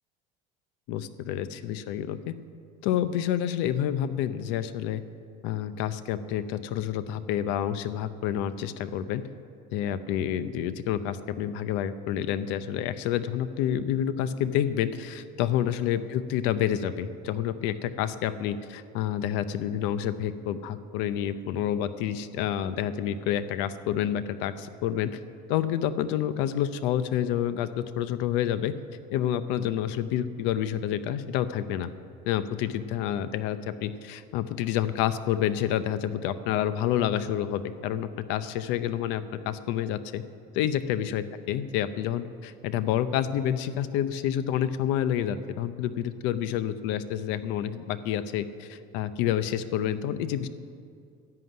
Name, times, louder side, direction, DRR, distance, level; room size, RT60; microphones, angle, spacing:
voice 1, 0.9-2.3 2.8-5.0 5.4-9.2 9.7-25.2 25.5-28.7 29.1-31.9 32.3-40.2 40.5-50.5, left 10 dB, 70° left, 13 dB, 0.7 m, -28 dB
11.0 x 7.8 x 9.8 m, 2.3 s
cardioid pair, 175°, 20 cm